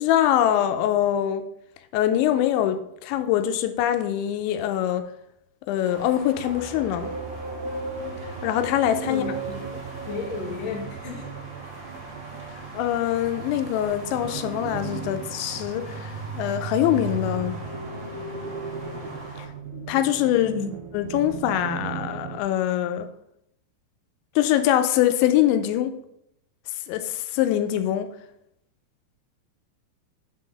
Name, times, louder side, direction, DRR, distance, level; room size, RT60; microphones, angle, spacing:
voice 1, 0.0-1.5 1.9-5.1 5.7-7.1 8.4-9.4 12.7-17.6 19.4-19.5 19.7-20.6 20.9-23.1 24.4-26.0 26.9-28.1, left 11 dB, 90° left, 2.9 m, -23 dB
sound 1, 5.8-19.5, right 2 dB, 40° right, 1.8 m, -42 dB
sound 2, 6.4-22.4, right 5 dB, 80° right, 2.2 m, -36 dB
voice 2, 9.1-9.8 10.1-11.3 12.5-12.6 20.4-20.7, left 5 dB, 65° left, 1.6 m, -33 dB
6.9 x 3.8 x 6.2 m
omnidirectional pair, 5.2 m